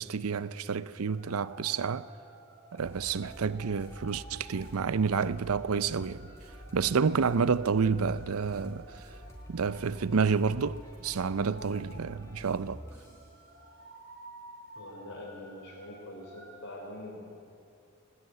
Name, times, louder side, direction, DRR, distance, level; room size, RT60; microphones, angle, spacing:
voice 1, 0.0-2.1 2.7-6.2 6.7-9.0 9.5-12.8, right 5 dB, 80° right, 0.6 m, -29 dB
sound 1, 1.1-16.8, right 1 dB, 50° right, 4.6 m, -53 dB
sound 2, 2.8-13.4, equal, 10° left, 4.2 m, -49 dB
voice 2, 14.8-17.4, left 1 dB, 75° left, 3.6 m, -44 dB
19.5 x 19.5 x 9.5 m
head